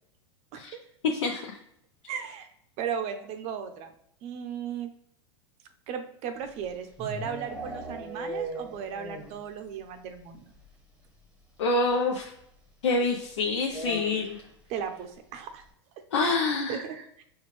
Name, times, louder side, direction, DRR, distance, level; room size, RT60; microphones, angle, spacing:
voice 1, 1.0-1.5 11.6-12.3 12.8-14.4 16.1-16.8, left 3 dB, 80° left, 0 dB, 0.6 m, -26 dB
voice 2, 2.1-2.5 2.8-3.9 4.2-4.9 5.9-10.5 14.7-15.6 16.2-16.4 16.7-17.2, right 8 dB, 45° right, 7 dB, 0.6 m, -36 dB
sound 1, 6.4-9.5 9.7-9.8 10.2-10.3 10.5-10.6 11.9-12.0 13.7-14.5, right 2 dB, 5° right, 0.9 m, -38 dB
4.3 x 2.2 x 3.1 m, 0.74 s
hypercardioid pair, 105°, 15 cm